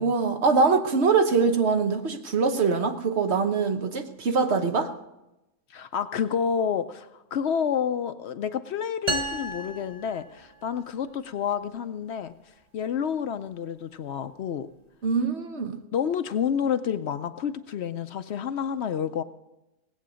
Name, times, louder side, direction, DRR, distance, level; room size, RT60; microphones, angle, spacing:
voice 1, 0.0-4.9 15.0-15.8, right 4 dB, 60° right, 7 dB, 1.2 m, -23 dB
voice 2, 5.7-12.3 12.7-14.7 15.9-19.2, left 7 dB, 65° left, 11 dB, 0.8 m, -29 dB
sound 1, 9.1-10.8, right 1 dB, 35° right, 0.9 m, -32 dB
18.0 x 8.3 x 6.3 m, 0.95 s
omnidirectional pair, 1.3 m